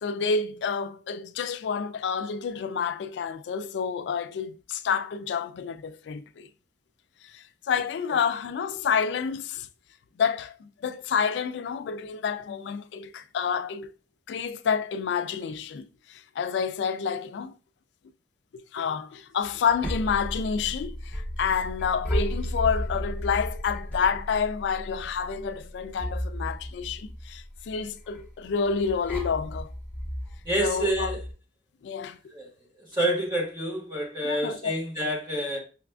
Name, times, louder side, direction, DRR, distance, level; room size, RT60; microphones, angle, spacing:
voice 1, 0.0-6.5 7.3-9.7 10.2-13.9 14.3-17.5 18.7-29.7 30.6-31.2 31.8-32.2 34.2-34.7, left 6 dB, 80° left, 0.3 m, -29 dB
sound 1, 19.4-31.3, equal, 10° left, 1.1 m, -34 dB
voice 2, 30.4-31.2 32.3-32.5 32.9-35.6, right 1 dB, 25° right, 1.2 m, -28 dB
5.5 x 2.4 x 2.2 m
head